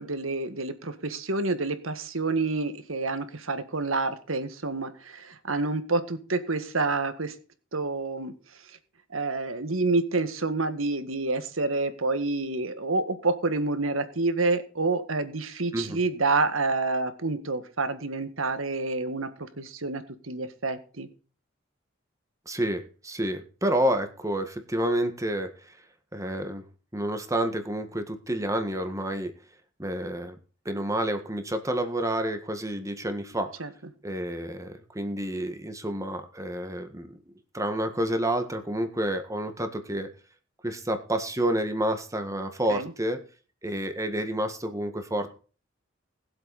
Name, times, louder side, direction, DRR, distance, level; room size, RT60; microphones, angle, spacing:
voice 1, 0.0-7.4 7.7-8.8 9.1-21.1 33.6-33.7 42.7-42.9, right 3 dB, 80° right, 10 dB, 1.8 m, -28 dB
voice 2, 22.4-25.7 26.1-26.6 26.9-29.3 29.8-30.4 30.6-33.5 34.0-37.2 37.5-40.1 40.6-43.2 43.6-45.3, right 1 dB, 15° right, 7 dB, 1.6 m, -29 dB
20.0 x 7.9 x 4.2 m, 0.38 s
head